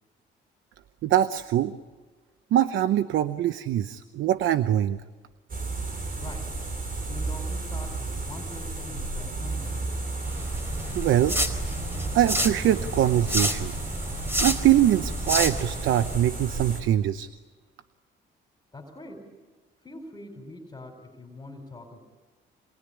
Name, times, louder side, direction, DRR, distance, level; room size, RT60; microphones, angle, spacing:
voice 1, 1.0-1.7 2.5-5.0 10.9-11.4 12.1-13.7 14.4-17.3, right 12 dB, 80° right, 12 dB, 0.9 m, -23 dB
sound 1, 5.5-16.8, right 3 dB, 45° right, 6.4 m, -33 dB
voice 2, 6.2-6.5 7.0-9.8 18.7-19.3 19.8-22.0, left 2 dB, 20° left, 2 dB, 4.3 m, -43 dB
sound 2, 10.2-16.2, equal, 10° right, 4.5 m, -30 dB
27.5 x 21.0 x 10.0 m, 1.3 s
cardioid pair, 90°, 20 cm